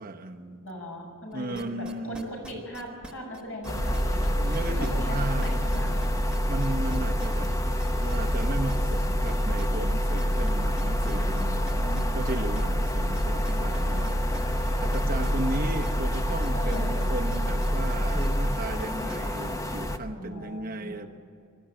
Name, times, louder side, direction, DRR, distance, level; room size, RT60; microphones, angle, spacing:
voice 1, 0.0-0.7 1.3-2.5 4.4-5.7 6.5-7.5 8.0-11.7 12.1-14.1 14.8-21.1, right 2 dB, 40° right, 3 dB, 1.1 m, -35 dB
voice 2, 0.6-6.0 11.7-12.3 13.9-14.1 16.5-17.1 20.1-21.1, equal, 65° left, 0 dB, 6.8 m, -39 dB
sound 1, 1.3-19.5, right 1 dB, 5° right, 1.4 m, -46 dB
sound 2, 3.6-20.0, left 1 dB, 15° left, 0.8 m, -32 dB
sound 3, 3.8-18.5, equal, 65° right, 5.5 m, -28 dB
22.0 x 13.0 x 9.0 m, 2.3 s
head